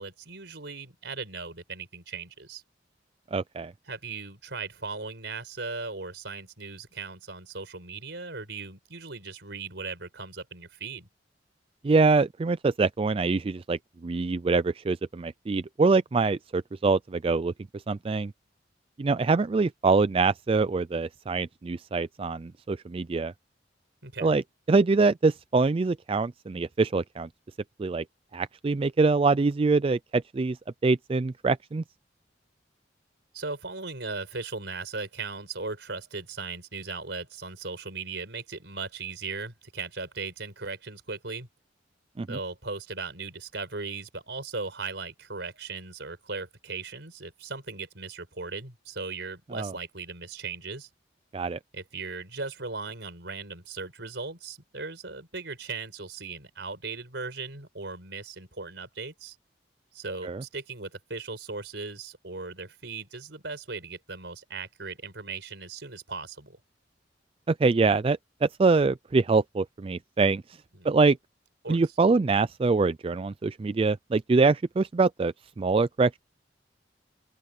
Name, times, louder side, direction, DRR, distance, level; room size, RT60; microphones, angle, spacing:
voice 1, 0.0-2.6 3.9-11.1 24.0-24.4 33.3-41.5 42.3-50.9 51.7-59.3 59.9-66.6 70.7-70.9 71.6-71.8, right 4 dB, 70° right, 4.8 m, -38 dB
voice 2, 3.3-3.7 11.8-18.3 19.0-23.3 24.2-24.4 24.7-27.3 27.8-28.0 28.3-30.6 30.8-31.8 42.2-42.4 49.5-49.7 51.3-51.6 60.2-60.4 67.5-70.4 70.8-71.2 71.7-76.2, right 4 dB, 30° right, 0.3 m, -24 dB
open air
head